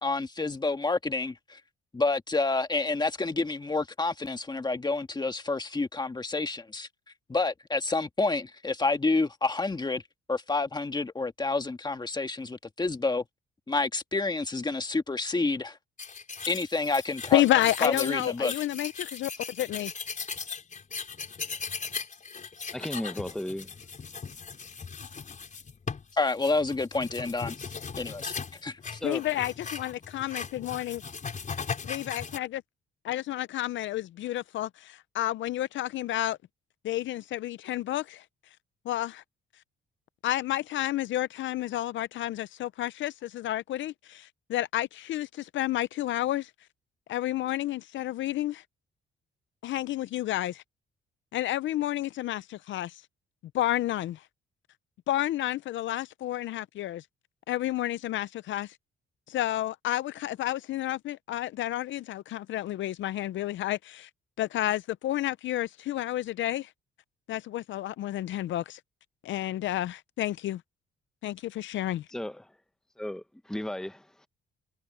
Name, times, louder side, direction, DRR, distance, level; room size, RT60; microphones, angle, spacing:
voice 1, 0.0-1.6 1.9-6.9 7.3-10.0 10.3-13.2 13.7-15.8 16.5-17.4 17.8-18.5 26.1-27.7 28.0-28.3 28.6-29.0, left 3 dB, 20° left, 1.9 m, -29 dB
sound 1, 16.0-32.4, left 5 dB, 40° left, 4.6 m, -38 dB
voice 2, 17.3-19.9 29.0-31.0 31.8-32.6 33.0-36.4 36.8-38.2 38.9-39.2 40.2-46.5 47.1-48.6 49.6-50.6 51.3-52.9 53.5-54.2 55.1-57.0 57.5-58.7 59.3-64.1 64.4-66.7 67.3-68.8 69.2-70.6 71.2-72.0, left 14 dB, 70° left, 0.6 m, -30 dB
voice 3, 22.7-23.7 29.0-29.4 72.1-72.5 73.0-74.3, left 1 dB, 5° left, 1.1 m, -35 dB
cardioid pair, 90°, 20 cm